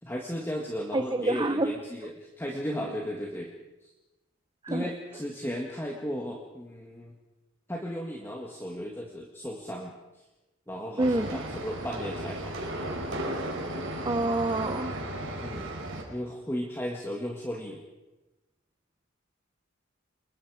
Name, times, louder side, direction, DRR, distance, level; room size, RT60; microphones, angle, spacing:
voice 1, 0.0-3.5 3.8-3.9 4.7-7.1 7.7-9.9 10.7-12.5 15.4-15.7 16.1-17.8, equal, 10° left, -1 dB, 1.9 m, -35 dB
voice 2, 0.9-1.7 4.6-4.9 11.0-11.4 14.0-14.9, right 2 dB, 20° right, 8 dB, 0.8 m, -27 dB
sound 1, 11.0-16.0, right 1 dB, 70° right, 4.4 m, -35 dB
28.0 x 21.5 x 5.0 m, 1.1 s
head